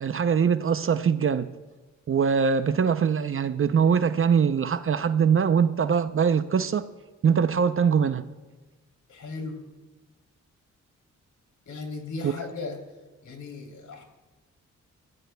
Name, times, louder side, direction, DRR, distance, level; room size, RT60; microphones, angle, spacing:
voice 1, 0.0-1.5 2.1-6.8 7.2-8.2 12.2-12.3, right 6 dB, 45° right, 0.6 m, -22 dB
voice 2, 9.1-9.6 11.7-12.8 13.2-14.0, left 3 dB, 70° left, 3.2 m, -36 dB
24.5 x 16.0 x 2.3 m
cardioid pair, 70°, 31 cm